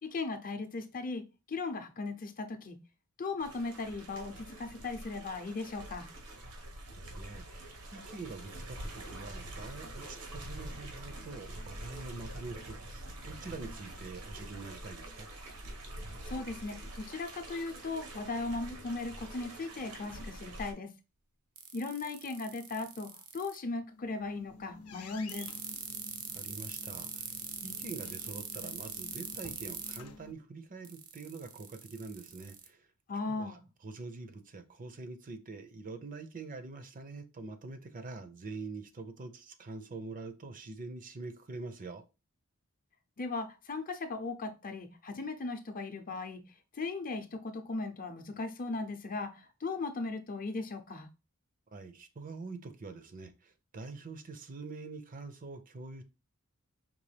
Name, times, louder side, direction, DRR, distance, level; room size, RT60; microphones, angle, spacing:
voice 1, 0.0-1.2 1.5-2.8 3.2-6.1 16.3-20.9 21.7-25.5 33.1-33.6 43.2-46.4 46.7-51.1, left 3 dB, 40° left, 0.6 m, -37 dB
sound 1, 3.4-20.7, right 1 dB, 90° right, 1.3 m, -45 dB
voice 2, 6.9-15.3 26.3-27.3 27.6-32.9 33.3-42.0 51.7-56.0, right 3 dB, 35° right, 0.6 m, -45 dB
sound 2, 21.6-23.6 25.3-30.0 30.8-32.7, right 9 dB, 75° right, 0.7 m, -42 dB
sound 3, 23.8-30.3, left 4 dB, 80° left, 0.7 m, -51 dB
5.2 x 3.1 x 3.3 m
head